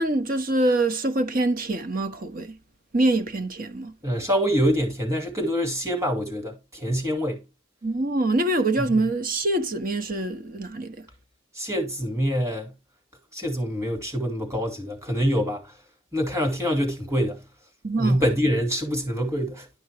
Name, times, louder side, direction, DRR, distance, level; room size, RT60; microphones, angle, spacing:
voice 1, 0.0-2.6 2.9-3.9 7.8-10.9 17.8-18.2, right 2 dB, 40° right, 1.1 m, -24 dB
voice 2, 4.0-7.4 8.8-9.0 11.5-12.7 13.3-15.7 16.1-17.4 18.0-19.7, equal, 15° right, 2.5 m, -25 dB
11.5 x 5.5 x 3.2 m
head